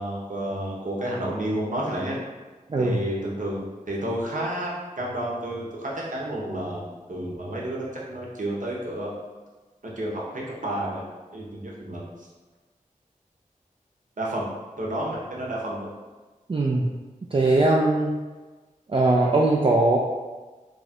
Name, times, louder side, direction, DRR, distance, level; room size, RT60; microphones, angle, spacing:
voice 1, 0.0-2.2 2.8-9.1 10.0-11.0 11.3-12.3 14.2-14.5 14.8-15.9, right 1 dB, 70° right, -4 dB, 0.9 m, -30 dB
voice 2, 16.5-16.9 17.3-18.2 18.9-20.0, right 2 dB, 40° right, -2 dB, 0.4 m, -20 dB
3.3 x 2.4 x 4.2 m, 1.3 s
wide cardioid pair, 65°, 14 cm